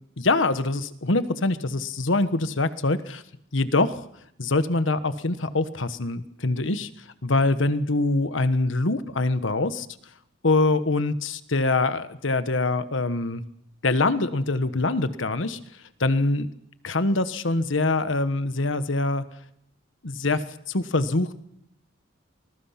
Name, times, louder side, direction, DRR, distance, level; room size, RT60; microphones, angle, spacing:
voice 1, 0.2-3.2 3.5-4.0 4.4-6.9 7.2-9.9 10.4-13.4 13.8-15.6 16.0-16.5 16.8-19.2 20.0-21.3, left 2 dB, 80° left, 12 dB, 1.3 m, -24 dB
24.5 x 21.0 x 5.9 m, 0.74 s
head